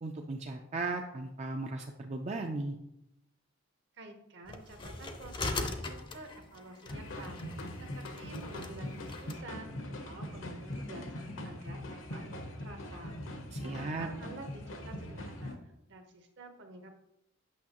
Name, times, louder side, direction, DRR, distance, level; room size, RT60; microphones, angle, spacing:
voice 1, 0.0-2.8 13.5-14.1, right 3 dB, 35° right, 2 dB, 0.4 m, -36 dB
voice 2, 4.0-7.4 7.9-13.2 13.6-17.0, right 2 dB, 60° right, 5 dB, 1.0 m, -50 dB
sound 1, 4.5-9.4, left 2 dB, 25° left, 0.6 m, -41 dB
sound 2, 6.8-15.5, left 1 dB, 70° left, 1.0 m, -42 dB
8.5 x 6.3 x 2.9 m, 0.84 s
head